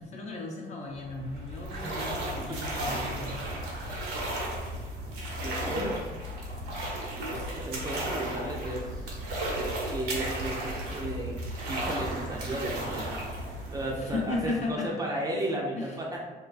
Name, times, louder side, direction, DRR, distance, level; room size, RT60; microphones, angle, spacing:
voice 1, 0.0-3.4 13.7-15.0 15.7-16.0, left 3 dB, 40° left, -1 dB, 0.5 m, -36 dB
sound 1, 1.0-14.7, right 1 dB, 85° right, 0.7 m, -34 dB
voice 2, 5.4-6.0 7.3-9.1 9.9-11.4 11.7-13.2 13.7-16.2, right 1 dB, 20° right, -2 dB, 0.4 m, -34 dB
2.4 x 2.2 x 2.4 m, 1.3 s
cardioid pair, 110°, 17 cm